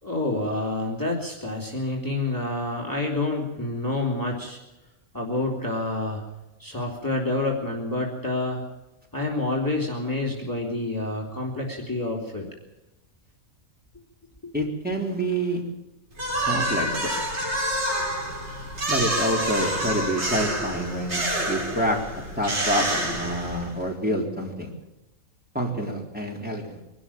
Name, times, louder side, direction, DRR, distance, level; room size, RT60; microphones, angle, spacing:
voice 1, 0.0-4.6 5.1-6.2 6.6-8.6 9.1-12.5, left 2 dB, 15° left, -2 dB, 3.4 m, -28 dB
voice 2, 14.5-15.8 16.4-17.1 18.9-24.7 25.5-26.8, right 1 dB, 5° right, -1 dB, 3.7 m, -27 dB
sound 1, 16.2-23.8, right 1 dB, 50° right, 4.2 m, -28 dB
23.5 x 12.5 x 8.8 m, 1.0 s
omnidirectional pair, 1.5 m